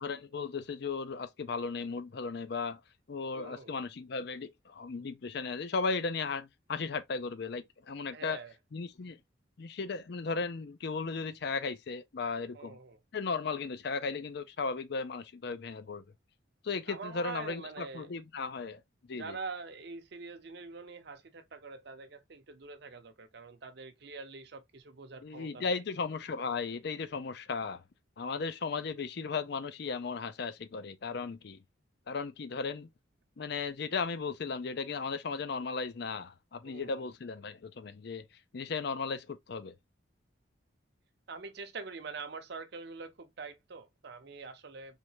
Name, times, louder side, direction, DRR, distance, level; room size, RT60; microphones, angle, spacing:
voice 1, 0.0-2.8 3.1-8.4 8.7-9.2 9.6-12.8 13.1-16.0 16.6-18.8 19.1-19.4 25.2-27.8 28.2-31.6 32.1-32.9 33.4-38.2 38.5-39.7, left 4 dB, 55° left, 0.5 m, -36 dB
voice 2, 3.3-3.7 8.1-8.5 12.5-13.0 16.9-18.1 19.1-25.8 36.6-37.1 41.3-45.0, right 4 dB, 55° right, 0.6 m, -44 dB
3.6 x 3.1 x 2.8 m
head